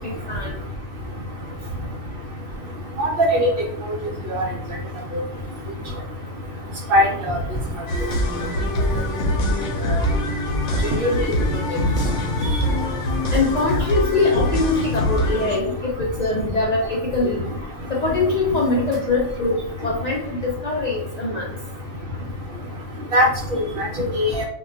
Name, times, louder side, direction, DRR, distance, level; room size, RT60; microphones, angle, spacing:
voice 1, 0.0-0.5 13.3-17.4 17.9-21.4, left 3 dB, 60° left, -3 dB, 0.4 m, -23 dB
voice 2, 3.0-3.5 4.3-4.4 6.9-7.3 9.9-10.0 11.0-11.1 11.7-11.9 23.1-23.3 23.8-24.5, equal, 60° right, 1 dB, 0.6 m, -19 dB
sound 1, 7.5-7.9 8.3-8.7 9.2-9.7 10.0-10.3 10.7-11.6 12.0-13.7, right 1 dB, 85° right, 1.0 m, -31 dB
sound 2, 7.9-15.6, left 1 dB, 75° left, 0.9 m, -24 dB
2.2 x 2.2 x 3.7 m, 0.71 s
omnidirectional pair, 1.3 m